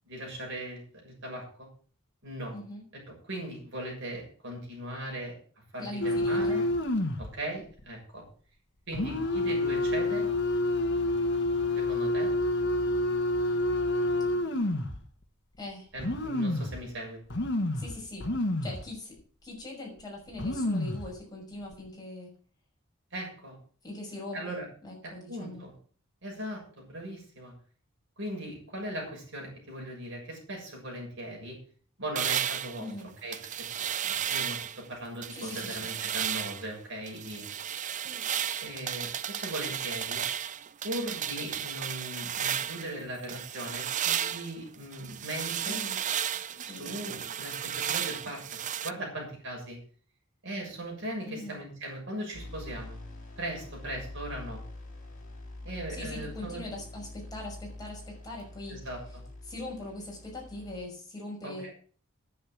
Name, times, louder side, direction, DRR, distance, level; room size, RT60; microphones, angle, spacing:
voice 1, 0.1-1.7 2.2-2.5 3.1-5.4 5.7-6.7 7.2-8.2 8.9-10.3 11.8-12.3 15.9-17.2 23.1-23.6 24.3-24.7 25.0-25.7 26.2-27.5 28.2-31.6 32.0-32.9 33.2-37.5 38.6-40.2 40.8-45.8 46.6-49.8 50.4-53.0 53.4-54.6 55.6-56.6 58.7-59.2 61.4-61.7, right 1 dB, 55° right, -1 dB, 6.9 m, -39 dB
voice 2, 2.5-2.8 5.8-6.5 15.6-15.9 17.7-18.3 18.6-19.2 19.4-22.3 23.8-25.6 32.8-33.1 35.3-35.8 45.7-46.0 46.6-46.8 51.2-51.6 55.9-58.8 59.5-61.7, left 2 dB, 20° left, -2 dB, 6.0 m, -41 dB
sound 1, 6.0-7.3 7.7-7.8 8.9-15.0 15.6-15.7 16.0-16.8 17.3-18.9 19.2-19.3 20.0-20.1 20.3-21.1 21.6-21.9, left 1 dB, 55° left, 1.5 m, -28 dB
sound 2, 32.2-34.8 35.2-36.7 37.1-42.9 43.3-48.9, right 9 dB, 35° right, 0.5 m, -33 dB
sound 3, 52.3-60.9, left 2 dB, 40° left, 4.9 m, -45 dB
10.5 x 9.4 x 7.3 m, 0.43 s
head